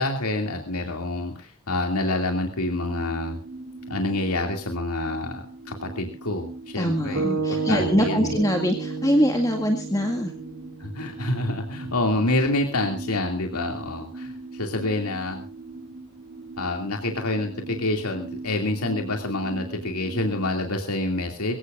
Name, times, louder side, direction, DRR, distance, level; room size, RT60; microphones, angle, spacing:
voice 1, 0.0-3.4 3.9-8.4 10.8-15.4 16.6-21.6, left 2 dB, 90° left, 3 dB, 2.5 m, -27 dB
sound 1, 2.6-20.5, right 3 dB, 60° right, 3.6 m, -40 dB
voice 2, 6.8-10.3, equal, 15° left, 3 dB, 1.8 m, -23 dB
sound 2, 7.1-11.4, right 4 dB, 80° right, 3.2 m, -31 dB
23.5 x 17.0 x 2.5 m, 0.33 s
head